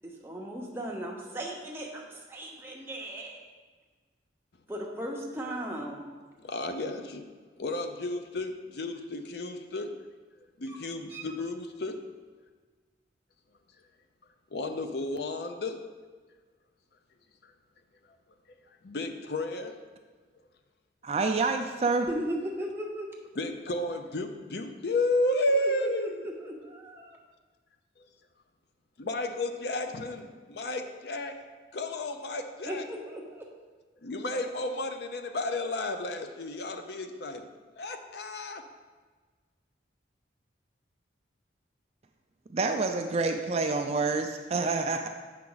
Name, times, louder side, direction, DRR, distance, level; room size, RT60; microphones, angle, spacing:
voice 1, 0.0-3.4 4.7-6.0 10.7-10.8 11.1-11.4 22.1-23.1 25.5-27.2 32.6-33.4, equal, 10° right, -1 dB, 0.9 m, -37 dB
voice 2, 6.4-7.2 7.6-9.9 10.4-12.0 14.5-15.8 17.4-17.5 18.5-18.6 18.8-19.8 23.3-26.3 28.0-28.1 29.0-31.4 31.7-32.8 34.0-37.4 37.8-38.6, left 1 dB, 60° left, 6 dB, 0.6 m, -32 dB
voice 3, 21.0-22.1 42.5-45.1, right 3 dB, 35° right, 5 dB, 0.3 m, -27 dB
7.4 x 5.8 x 3.9 m, 1.4 s
head